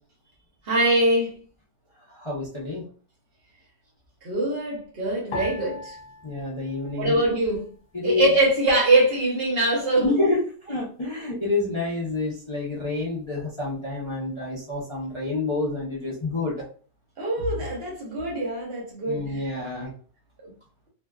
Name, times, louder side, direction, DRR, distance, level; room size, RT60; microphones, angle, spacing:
voice 1, 0.7-1.3 4.2-6.0 7.0-7.6 8.0-10.1 17.2-19.4 20.4-20.5, right 2 dB, 55° right, 1.0 m, -23 dB
voice 2, 2.1-2.8 6.2-7.2 7.9-8.3 10.0-10.4 10.7-16.5 19.1-19.9, left 3 dB, 35° left, 0.5 m, -28 dB
sound 1, 5.3-7.8 8.1-9.0 9.6-10.0, left 2 dB, 80° left, 0.9 m, -40 dB
2.5 x 2.2 x 2.2 m
omnidirectional pair, 1.3 m